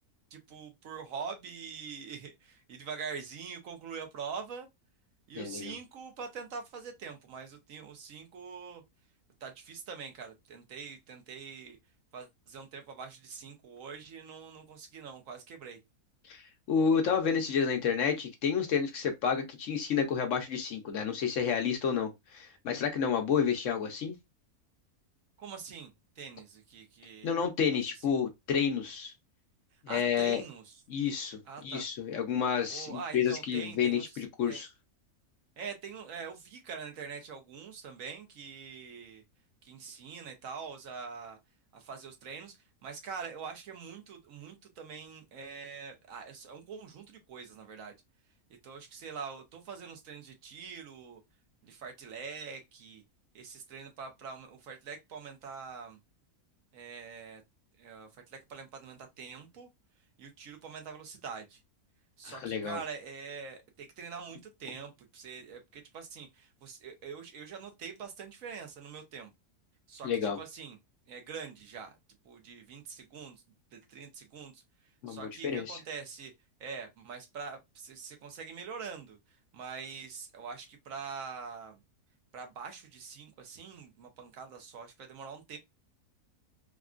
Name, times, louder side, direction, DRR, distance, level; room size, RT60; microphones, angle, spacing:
voice 1, 0.3-4.7 5.3-8.8 9.4-11.8 12.1-15.8 25.4-27.4 27.8-28.1 29.7-30.8 31.5-31.9 32.7-34.6 35.6-39.2 39.6-41.4 41.7-47.9 48.6-51.2 51.6-53.0 53.3-56.0 56.7-57.4 57.8-59.7 60.2-61.6 62.2-69.3 69.9-70.8 71.1-71.9 72.2-73.4 73.7-74.6 75.1-76.3 76.6-79.2 79.5-81.8 82.3-85.6, right 6 dB, 65° right, 1.1 m, -44 dB
voice 2, 5.4-5.7 16.3-16.4 16.7-24.1 27.2-29.1 29.9-30.4 30.9-34.7 62.2-62.8 70.0-70.4 75.0-75.8, left 7 dB, 65° left, 0.9 m, -30 dB
3.6 x 2.2 x 2.4 m
omnidirectional pair, 1.6 m